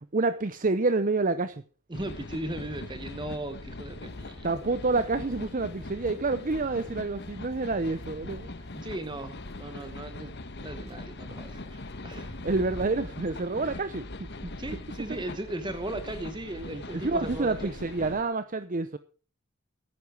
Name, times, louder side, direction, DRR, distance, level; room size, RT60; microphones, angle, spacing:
voice 1, 0.0-1.6 4.4-8.5 12.4-14.5 15.1-15.2 16.9-19.0, right 3 dB, 40° right, 12 dB, 0.7 m, -28 dB
sound 1, 1.9-18.2, left 2 dB, 55° left, 1.2 m, -41 dB
voice 2, 1.9-4.5 8.7-10.3 10.6-12.4 14.6-17.7, right 1 dB, 20° right, 9 dB, 1.1 m, -37 dB
sound 2, 3.5-14.0, equal, 30° left, 5.5 m, -56 dB
sound 3, 10.5-10.9 12.0-16.4, equal, 70° right, 6.2 m, -49 dB
14.5 x 11.0 x 4.7 m, 0.38 s
head